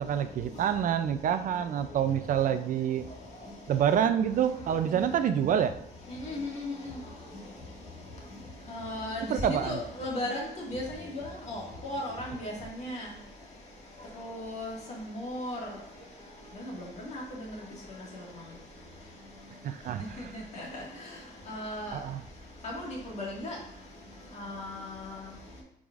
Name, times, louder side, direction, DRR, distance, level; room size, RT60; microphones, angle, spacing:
voice 1, 0.0-3.1 3.7-5.7 9.3-9.8 19.6-20.3 21.9-22.2, right 9 dB, 55° right, 10 dB, 0.4 m, -27 dB
voice 2, 6.2-6.7 8.7-10.4 10.7-10.8 11.1-12.5 12.8-13.0 14.4-14.7 15.2-15.6 17.1-17.2 21.5-21.9 22.8-22.9 23.2-23.5 24.5-24.7, left 1 dB, 45° left, -3 dB, 1.8 m, -35 dB
9.0 x 4.8 x 2.4 m, 0.80 s
cardioid pair, 165°, 16 cm